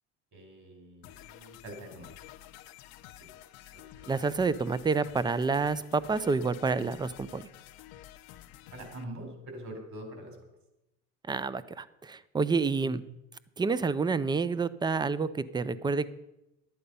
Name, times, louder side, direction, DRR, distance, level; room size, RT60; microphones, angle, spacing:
voice 1, 0.3-2.1 3.2-3.3 3.7-4.1 8.7-10.4 12.8-13.0, right 1 dB, 50° right, 4 dB, 3.9 m, -44 dB
sound 1, 1.0-9.0, left 13 dB, 70° left, 0.8 m, -51 dB
voice 2, 4.1-7.4 11.3-13.0 13.6-16.1, right 4 dB, 10° right, 16 dB, 0.4 m, -29 dB
11.5 x 8.5 x 5.4 m, 0.93 s
cardioid pair, 110°, 37 cm